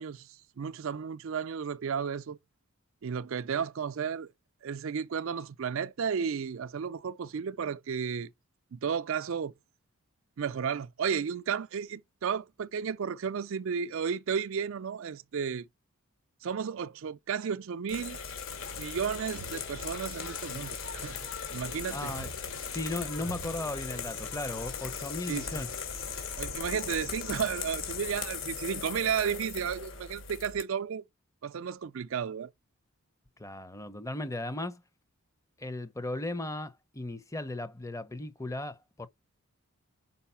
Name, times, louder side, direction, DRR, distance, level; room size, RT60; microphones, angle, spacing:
voice 1, 0.0-2.4 3.0-4.3 4.6-8.3 8.7-9.5 10.4-15.7 16.4-18.2 18.8-21.2 21.5-22.1 25.3-25.6 26.4-31.0 31.4-32.5, right 7 dB, 65° right, 0.4 m, -33 dB
sound 1, 17.9-30.6, left 6 dB, 65° left, 2.4 m, -39 dB
sound 2, 18.5-28.2, left 1 dB, 85° left, 3.2 m, -46 dB
voice 2, 21.9-22.3 22.7-25.7 33.4-34.8 35.6-39.1, left 2 dB, 15° left, 0.7 m, -36 dB
5.5 x 4.8 x 5.6 m
head